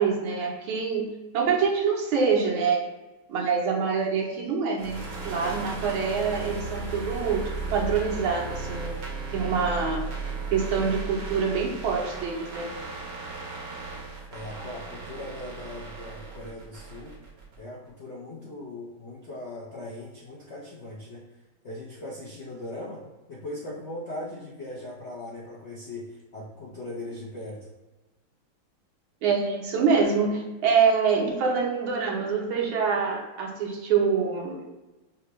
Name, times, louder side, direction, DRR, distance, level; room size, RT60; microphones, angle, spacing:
voice 1, 0.0-2.8 3.3-9.0 9.3-10.1 10.5-12.7 29.2-34.6, right 5 dB, 75° right, 0 dB, 1.6 m, -25 dB
sound 1, 4.8-17.6, right 4 dB, 55° right, 1.1 m, -36 dB
voice 2, 14.3-17.1 17.6-21.2 21.6-27.7, left 1 dB, 70° left, -5 dB, 0.6 m, -39 dB
5.7 x 2.3 x 3.0 m, 1.1 s
omnidirectional pair, 2.3 m